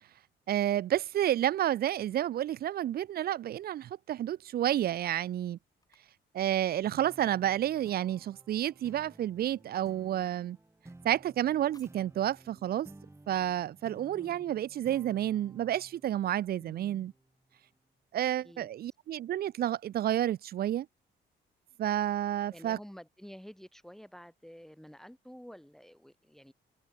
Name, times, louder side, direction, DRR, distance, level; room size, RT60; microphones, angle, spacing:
voice 1, 0.5-5.6 6.3-10.6 11.0-12.9 13.3-17.1 18.1-20.9 21.8-22.8, right 12 dB, 50° right, 0.4 m, -30 dB
sound 1, 5.2-14.9, left 2 dB, 20° left, 5.4 m, -73 dB
sound 2, 6.9-17.7, right 2 dB, 15° right, 4.6 m, -56 dB
voice 2, 14.1-14.6 16.6-17.1 18.4-18.7 22.5-26.5, equal, ahead, 3.4 m, -50 dB
cardioid pair, 90°, 20 cm